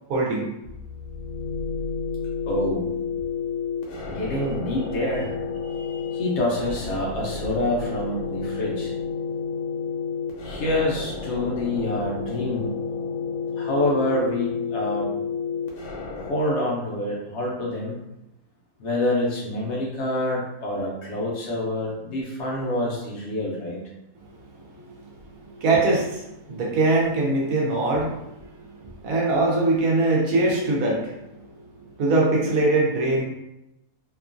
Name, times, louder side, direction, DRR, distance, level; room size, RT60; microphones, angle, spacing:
voice 1, 0.1-0.4 5.7-6.2 24.8-33.2, right 2 dB, 65° right, -3 dB, 1.1 m, -23 dB
sound 1, 0.6-16.3, left 5 dB, 80° left, 1.1 m, -31 dB
voice 2, 2.5-2.9 4.1-5.4 6.1-8.9 10.4-12.7 13.6-15.1 16.3-18.0 18.8-23.8, left 1 dB, 60° left, -4 dB, 0.7 m, -26 dB
2.9 x 2.3 x 2.4 m, 0.89 s
omnidirectional pair, 1.7 m